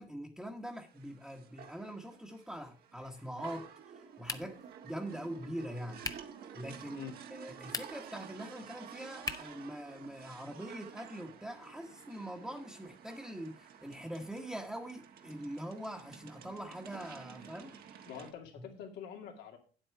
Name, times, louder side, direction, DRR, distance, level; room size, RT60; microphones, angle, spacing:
voice 1, 0.0-3.7 3.9-4.6 4.8-6.0 6.5-17.8 18.1-18.2 18.6-18.7, equal, ahead, -1 dB, 1.1 m, -43 dB
sound 1, 0.7-18.3, right 8 dB, 65° right, 1.3 m, -52 dB
sound 2, 4.2-4.7 6.0-6.4 7.6-8.2 9.2-9.6, left 4 dB, 20° left, 0.7 m, -40 dB
voice 2, 18.1-19.6, left 8 dB, 85° left, 4 dB, 2.1 m, -46 dB
8.6 x 8.0 x 4.6 m, 0.38 s
cardioid pair, 110°, 17 cm